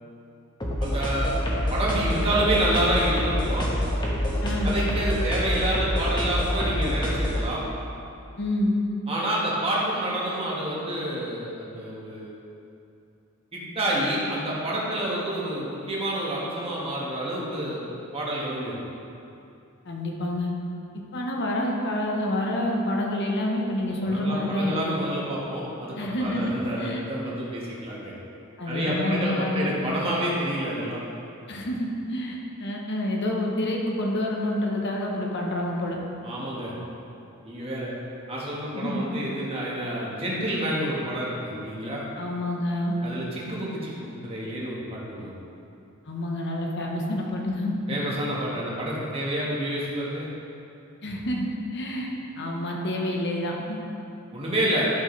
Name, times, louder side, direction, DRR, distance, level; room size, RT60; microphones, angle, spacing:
sound 1, 0.6-7.4, equal, 20° left, 1.3 m, -26 dB
voice 1, 0.8-1.4 1.7-3.7 4.6-7.6 9.1-12.3 13.5-17.8 18.1-18.8 24.0-28.1 28.7-31.0 36.2-36.7 37.4-37.9 38.3-42.0 43.0-45.3 47.9-50.3 54.3-54.9, right 1 dB, 30° right, -6 dB, 1.6 m, -28 dB
voice 2, 4.4-4.8 8.4-8.8 19.8-20.5 21.1-24.9 26.0-27.0 28.6-29.7 31.5-36.0 38.7-39.1 42.2-43.0 46.1-48.1 51.0-53.8, left 1 dB, 55° left, -1 dB, 1.1 m, -28 dB
11.0 x 6.2 x 3.3 m, 2.7 s
head